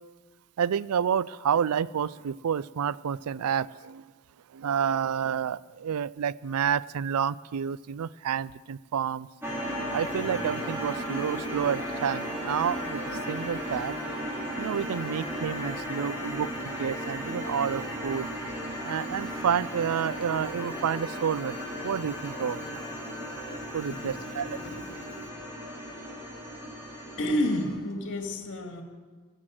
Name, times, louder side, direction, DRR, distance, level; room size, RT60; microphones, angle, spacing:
voice 1, 0.6-4.0 4.5-9.3 9.9-13.9 14.6-16.5 16.8-18.3 18.8-22.8 23.7-24.5, right 8 dB, 80° right, 20 dB, 0.4 m, -29 dB
sound 1, 9.4-27.7, equal, 10° right, 3.5 m, -35 dB
voice 2, 24.0-25.5 27.2-28.8, left 1 dB, 55° left, 4 dB, 2.2 m, -31 dB
19.5 x 7.9 x 7.7 m, 1.4 s
head